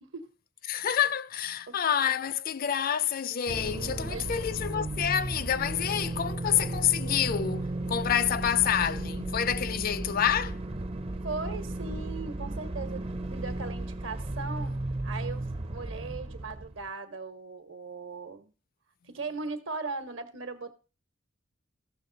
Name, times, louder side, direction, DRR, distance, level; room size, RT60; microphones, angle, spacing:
voice 1, 0.7-10.6, left 9 dB, 45° left, 0.4 m, -28 dB
sound 1, 3.5-16.9, right 2 dB, 30° right, 0.5 m, -34 dB
voice 2, 11.2-18.5 19.1-20.7, right 4 dB, 70° right, 1.2 m, -38 dB
14.5 x 6.2 x 3.9 m
head